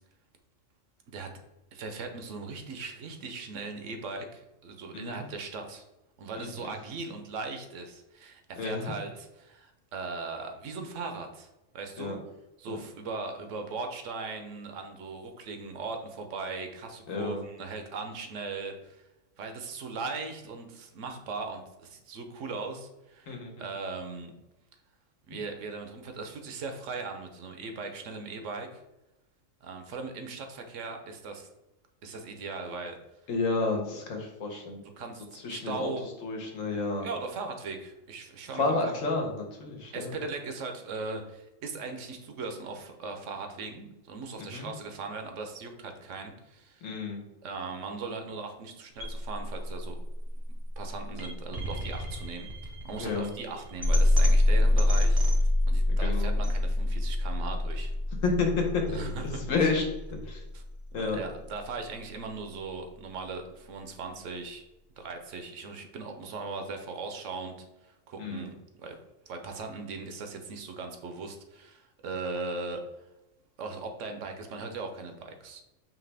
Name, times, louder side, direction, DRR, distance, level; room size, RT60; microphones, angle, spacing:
voice 1, 1.7-5.8 6.2-12.2 12.6-19.0 19.4-24.3 25.3-28.8 29.6-31.5 32.0-33.0 35.0-36.1 37.0-38.8 39.9-46.9 47.4-50.0 50.8-57.9 58.9-59.7 60.5-60.6 61.0-64.6 64.9-69.0 69.3-72.9 73.6-75.6, right 4 dB, 70° right, 5 dB, 1.0 m, -39 dB
voice 2, 6.4-6.7 8.6-8.9 12.0-12.2 12.7-12.8 17.1-17.4 23.3-23.6 25.3-25.4 33.3-34.8 35.4-35.9 36.2-37.1 38.6-40.1 44.4-44.7 46.8-47.2 53.0-53.3 55.9-56.4 58.2-59.8 60.3-60.4 60.9-61.2 68.2-68.5, left 3 dB, 80° left, 2 dB, 1.3 m, -30 dB
sound 1, 49.0-61.0, left 1 dB, 25° right, 0.6 m, -27 dB
4.9 x 2.9 x 3.3 m, 0.95 s
omnidirectional pair, 1.4 m